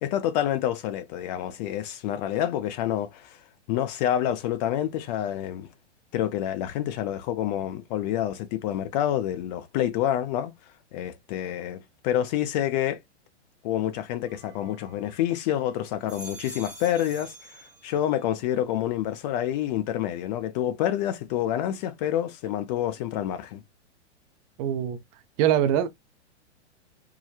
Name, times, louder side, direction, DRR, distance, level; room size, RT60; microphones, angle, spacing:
voice 1, 0.0-3.4 3.7-5.7 6.1-10.5 10.9-13.0 13.6-23.6, left 11 dB, 35° left, 0.5 m, -28 dB
sound 1, 14.3-15.4 15.9-18.3 18.6-19.2, right 2 dB, 5° right, 1.0 m, -47 dB
voice 2, 24.6-25.0 25.4-25.9, right 10 dB, 35° right, 0.5 m, -22 dB
4.6 x 2.2 x 2.2 m
hypercardioid pair, 120°, 36 cm